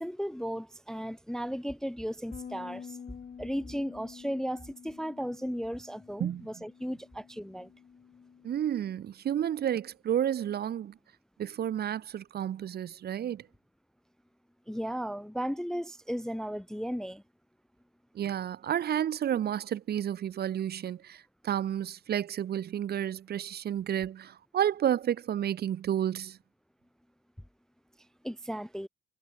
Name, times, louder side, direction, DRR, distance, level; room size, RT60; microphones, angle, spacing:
voice 1, 0.0-3.0 3.4-7.7 14.7-17.2 28.2-28.9, equal, 5° left, 0.4 m, -35 dB
Bass guitar, 2.3-8.6, left 7 dB, 45° left, 1.8 m, -49 dB
voice 2, 8.4-10.9 11.4-13.5 18.1-26.4, right 10 dB, 55° right, 0.7 m, -31 dB
cardioid pair, 90°, 20 cm